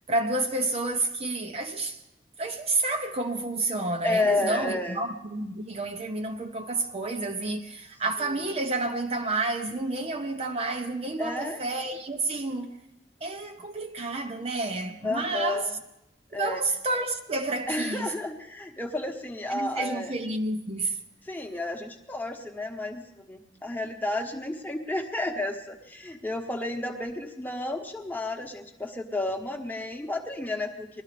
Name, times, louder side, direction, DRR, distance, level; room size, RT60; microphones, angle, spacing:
voice 1, 0.1-2.0 2.4-12.7 13.2-15.7 16.3-18.1 19.5-21.0, right 2 dB, 35° right, 0.6 m, -30 dB
voice 2, 4.0-5.0 8.2-8.5 11.2-11.6 15.0-15.7 16.3-16.6 17.7-20.1 21.2-31.0, left 2 dB, 10° left, 1.1 m, -31 dB
21.0 x 12.5 x 3.3 m
head